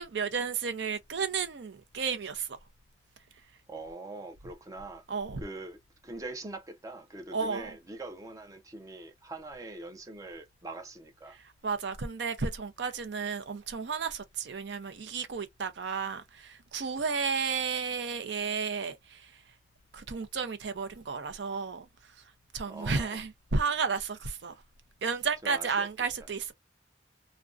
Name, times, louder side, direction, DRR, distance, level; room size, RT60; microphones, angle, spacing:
voice 1, 0.0-2.5 5.1-5.4 7.3-7.7 11.3-19.4 19.9-24.6 25.0-26.5, right 5 dB, 85° right, 0.6 m, -33 dB
voice 2, 3.7-5.1 5.4-11.4 22.7-23.2 25.4-25.9, right 2 dB, 20° right, 0.5 m, -43 dB
2.5 x 2.1 x 2.3 m
head